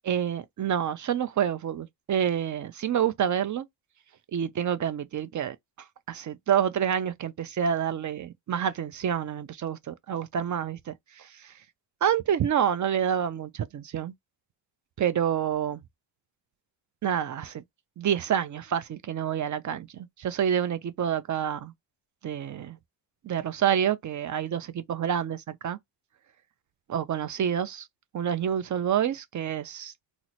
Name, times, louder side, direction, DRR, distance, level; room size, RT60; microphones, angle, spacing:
voice 1, 0.1-3.7 4.3-5.6 6.1-11.5 12.0-14.1 15.0-15.8 17.0-17.6 18.0-21.7 22.2-22.8 23.2-25.8 26.9-27.9 28.1-29.9, right 9 dB, 45° right, 0.4 m, -28 dB
2.9 x 2.0 x 4.0 m
cardioid pair, 120°, 46 cm